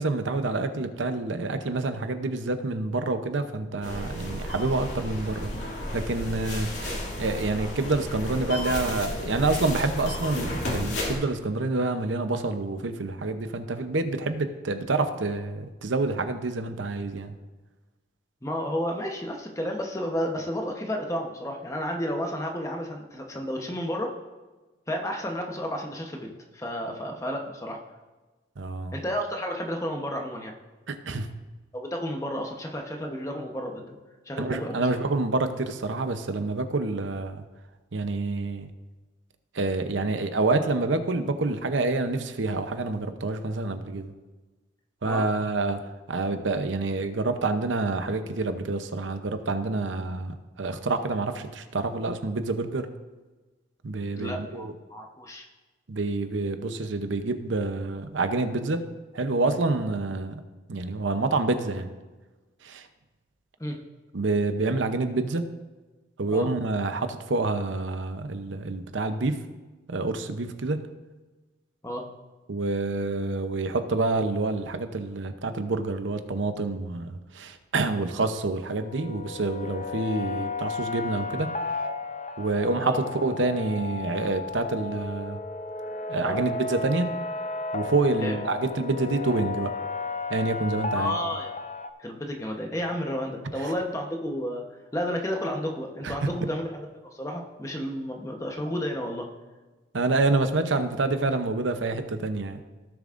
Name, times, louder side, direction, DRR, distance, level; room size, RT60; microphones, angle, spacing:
voice 1, 0.0-5.5 5.9-17.3 28.6-29.0 30.9-31.3 34.4-37.4 37.9-38.7 39.5-44.1 45.0-45.8 46.1-52.9 53.8-54.7 55.9-58.8 59.1-60.4 60.7-61.9 62.6-62.9 64.1-65.4 66.2-69.4 69.9-70.8 72.5-81.5 82.4-85.4 86.1-87.1 87.7-89.7 90.3-91.1 93.6-93.7 96.0-96.3 99.9-102.6, right 3 dB, 85° right, 8 dB, 0.7 m, -27 dB
sound 1, 3.8-11.1, left 1 dB, 70° left, 2.5 m, -32 dB
voice 2, 18.4-24.2 24.9-27.8 28.9-30.5 31.7-34.0 34.3-34.9 45.0-45.2 54.1-55.5 63.6-63.8 66.3-66.5 71.8-72.1 82.8-83.0 86.2-86.4 88.2-88.4 90.9-91.5 92.0-94.7 94.9-96.9 97.1-99.3, equal, 15° left, 2 dB, 0.9 m, -32 dB
sound 2, 78.6-91.9, left 3 dB, 35° left, 0.5 m, -33 dB
16.5 x 7.0 x 2.5 m, 1.2 s
head